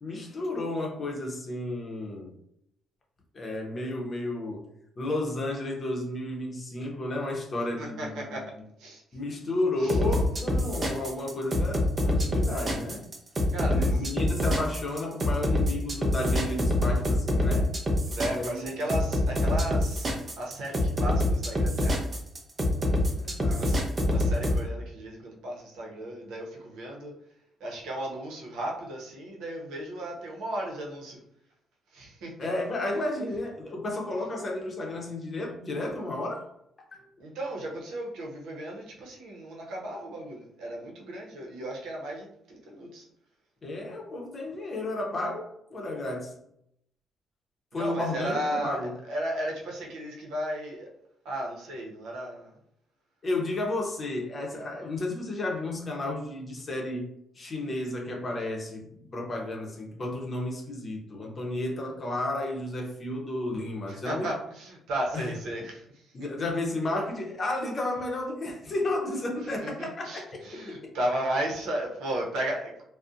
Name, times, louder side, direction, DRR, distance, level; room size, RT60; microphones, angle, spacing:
voice 1, 0.0-2.3 3.3-4.7 5.0-8.4 9.1-13.0 13.7-17.7 18.3-18.7 23.1-23.9 32.4-36.5 36.9-37.0 43.6-46.3 47.7-48.9 53.2-58.9 59.1-64.3 65.1-65.3 66.1-70.8, left 2 dB, 40° left, 0.7 m, -32 dB
voice 2, 7.8-8.4 8.8-9.0 9.8-10.0 13.5-14.1 18.1-20.1 20.4-22.1 23.5-23.8 24.0-27.1 27.6-31.2 31.9-32.3 37.2-43.1 47.7-48.8 49.1-50.9 51.2-52.5 63.9-65.8 69.6-72.8, right 1 dB, 85° right, 0.7 m, -34 dB
sound 1, 9.9-24.6, left 1 dB, 35° right, 0.6 m, -25 dB
2.6 x 2.0 x 2.4 m
cardioid pair, 90°, 0 cm